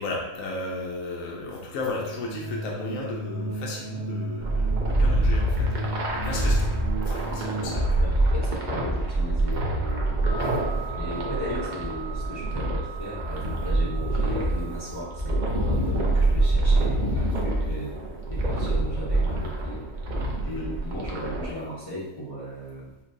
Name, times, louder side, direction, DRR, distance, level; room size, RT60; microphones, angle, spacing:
voice 1, 0.0-8.1 20.4-20.7, left 2 dB, 80° left, -2 dB, 1.1 m, -35 dB
sound 1, 1.8-7.8, right 1 dB, 85° right, 1.2 m, -34 dB
sound 2, 4.4-21.5, right 2 dB, 50° right, 0.6 m, -25 dB
voice 2, 7.4-10.5 11.0-17.9 18.3-19.8 20.4-22.9, left 1 dB, 25° left, -10 dB, 0.5 m, -36 dB
sound 3, 10.2-16.4, right 6 dB, 50° left, 0.8 m, -42 dB
5.8 x 2.2 x 2.6 m, 0.93 s
omnidirectional pair, 1.4 m